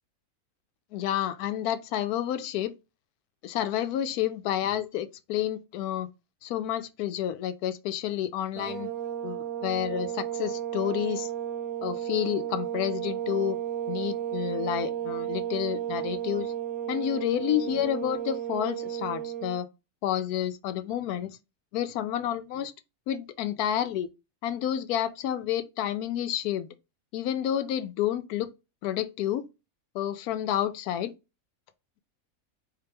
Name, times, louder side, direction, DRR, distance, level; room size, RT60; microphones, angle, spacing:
voice 1, 0.9-2.7 3.4-6.1 6.4-8.9 9.2-11.3 11.8-13.6 13.9-16.5 16.9-19.7 20.0-21.4 21.7-22.7 23.1-24.1 24.4-26.7 27.1-28.5 28.8-29.5 29.9-31.1, left 11 dB, 90° left, 1.1 m, -30 dB
sound 1, 8.6-19.6, right 10 dB, 75° right, 1.1 m, -33 dB
4.2 x 2.9 x 3.3 m
omnidirectional pair, 1.5 m